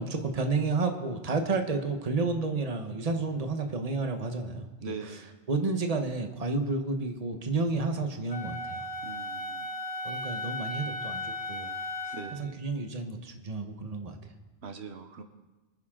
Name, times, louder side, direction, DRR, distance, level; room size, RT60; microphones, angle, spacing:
voice 1, 0.0-5.2 5.5-8.9 10.0-11.7 12.0-14.2, right 3 dB, 35° right, 5 dB, 1.2 m, -31 dB
voice 2, 4.8-5.4 9.0-9.7 12.1-12.7 14.6-15.2, right 4 dB, 80° right, 7 dB, 1.2 m, -42 dB
Wind instrument woodwind instrument, 8.3-12.4, left 2 dB, 75° left, 1.6 m, -36 dB
24.0 x 9.6 x 3.8 m, 1.2 s
omnidirectional pair, 1.1 m